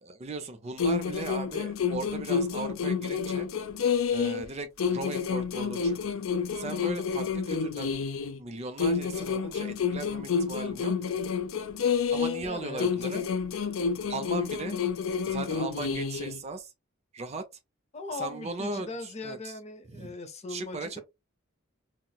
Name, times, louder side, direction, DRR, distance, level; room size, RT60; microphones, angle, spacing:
voice 1, 0.0-3.5 4.1-6.2 6.5-7.9 8.4-10.9 12.1-13.2 14.1-14.8 15.3-16.7 17.1-17.4 18.1-19.5 19.9-20.1 20.5-21.0, right 3 dB, 30° right, 0.4 m, -37 dB
sound 1, 0.8-4.5 4.8-8.4 8.8-12.5 12.8-16.4, left 6 dB, 85° left, 0.4 m, -29 dB
voice 2, 12.4-12.9 17.9-21.0, left 3 dB, 35° left, 0.6 m, -39 dB
4.1 x 2.0 x 2.2 m
head